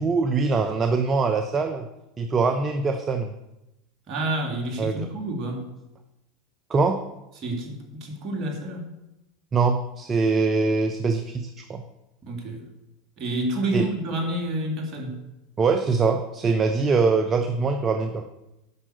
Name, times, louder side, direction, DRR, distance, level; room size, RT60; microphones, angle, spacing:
voice 1, 0.0-1.9 2.2-3.3 4.8-5.1 6.7-7.0 9.5-11.8 13.7-13.9 15.6-18.2, right 4 dB, 30° right, 7 dB, 0.9 m, -23 dB
voice 2, 4.1-5.7 7.4-8.9 12.2-12.7 13.2-15.3, right 1 dB, 45° right, 2 dB, 3.2 m, -29 dB
9.8 x 6.2 x 8.0 m, 0.93 s
hypercardioid pair, 90°, 0 cm